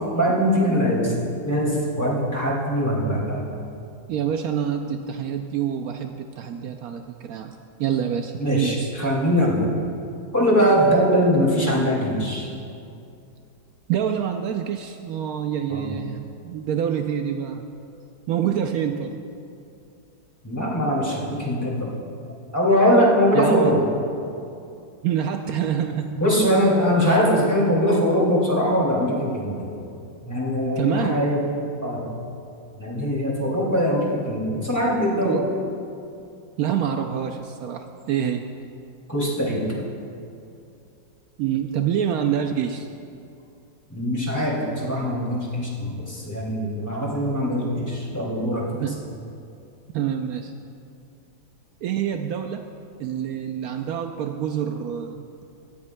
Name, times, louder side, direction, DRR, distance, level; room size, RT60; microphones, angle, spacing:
voice 1, 0.1-1.2 1.4-3.4 8.4-9.7 10.3-12.5 15.7-15.9 20.4-21.9 22.5-23.8 26.2-29.7 30.2-31.4 31.8-32.1 32.8-35.4 39.1-39.8 43.9-48.9, equal, 10° left, -5 dB, 2.2 m, -22 dB
voice 2, 4.1-8.9 13.9-17.6 18.3-19.2 23.3-23.8 25.0-26.2 30.8-31.2 35.2-35.5 36.6-38.5 41.4-42.9 48.8-49.1 49.9-50.5 51.8-52.7 53.0-55.2, right 9 dB, 90° right, 5 dB, 0.8 m, -26 dB
17.0 x 14.0 x 2.2 m, 2.6 s
omnidirectional pair, 2.1 m